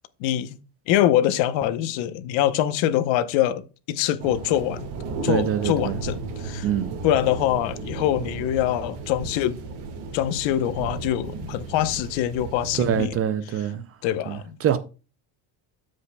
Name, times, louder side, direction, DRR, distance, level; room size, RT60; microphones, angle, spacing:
voice 1, 0.2-0.6 0.9-3.6 3.9-4.9 5.2-6.7 7.0-9.6 10.1-13.1 14.0-14.6, left 12 dB, 65° left, 0.9 m, -24 dB
sound 1, 4.2-13.1, right 4 dB, 60° right, 1.9 m, -35 dB
voice 2, 5.3-6.0 6.6-7.0 12.7-13.9 14.3-14.8, right 9 dB, 35° right, 0.4 m, -24 dB
13.5 x 5.4 x 2.2 m
cardioid pair, 145°, 48 cm